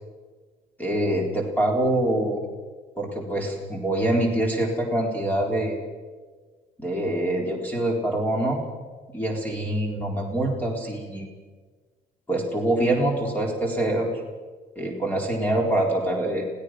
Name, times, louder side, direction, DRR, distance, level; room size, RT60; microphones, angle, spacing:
voice 1, 0.8-2.4 3.0-5.8 6.8-8.6 9.1-11.3 12.3-14.2 14.8-16.5, right 1 dB, 10° left, 0 dB, 4.1 m, -25 dB
26.0 x 17.0 x 6.2 m, 1.4 s
cardioid pair, 110°, 17 cm